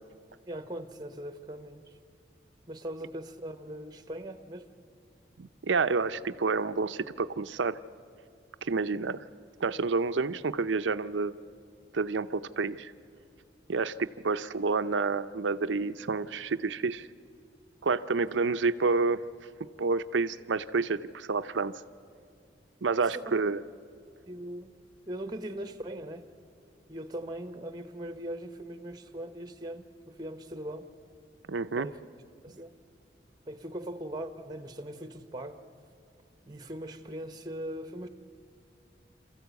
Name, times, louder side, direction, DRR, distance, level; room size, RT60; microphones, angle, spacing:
voice 1, 0.5-2.0 2.7-4.7 23.1-23.4 24.3-24.7 25.1-26.3 26.9-30.9 31.8-32.0 32.4-32.8 33.5-35.6 36.5-38.1, right 1 dB, 20° right, 9 dB, 1.0 m, -40 dB
voice 2, 5.4-7.8 8.6-9.3 9.6-11.3 11.9-12.9 13.7-17.1 17.8-19.2 19.8-21.7 22.8-23.6 31.5-31.9, right 4 dB, 85° right, 12 dB, 0.6 m, -29 dB
27.0 x 14.5 x 8.2 m, 2.4 s
head